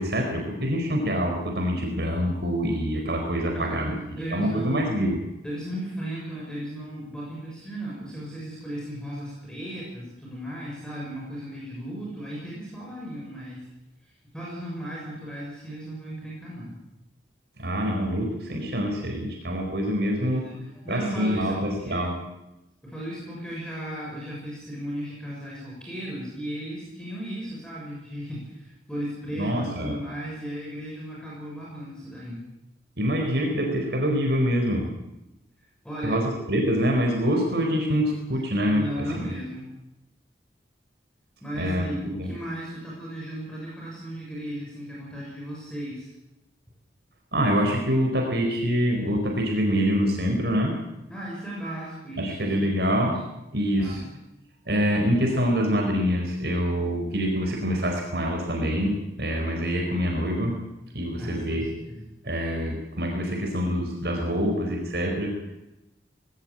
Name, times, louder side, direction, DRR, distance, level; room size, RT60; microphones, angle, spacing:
voice 1, 0.0-3.9 4.3-5.2 17.6-20.4 20.9-22.1 29.4-29.9 33.0-34.8 36.0-38.8 39.2-39.3 41.6-41.9 42.2-42.3 47.3-50.7 52.2-53.1 53.5-54.0 54.7-60.5 60.9-61.7 62.2-65.3, equal, 70° right, 1 dB, 4.5 m, -25 dB
voice 2, 3.5-4.9 5.4-13.7 14.0-16.8 20.2-22.1 22.8-32.4 35.8-36.2 38.3-38.4 38.7-39.7 41.4-46.1 51.1-53.2 53.8-54.2 61.1-62.0, right 1 dB, 5° left, -5 dB, 6.7 m, -36 dB
19.5 x 17.5 x 8.7 m, 0.93 s
head